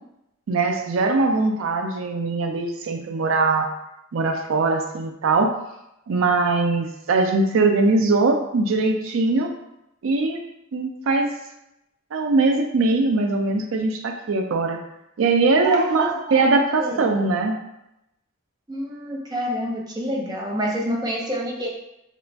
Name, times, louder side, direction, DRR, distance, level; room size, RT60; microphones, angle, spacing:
voice 1, 0.5-3.7 4.1-5.5 6.1-9.5 10.0-10.4 10.7-11.3 12.1-14.8 15.2-17.6, right 3 dB, 75° right, 4 dB, 0.4 m, -21 dB
voice 2, 15.6-16.5 16.8-17.1 18.7-21.7, equal, 20° right, -2 dB, 0.6 m, -28 dB
2.9 x 2.5 x 3.3 m, 0.85 s
head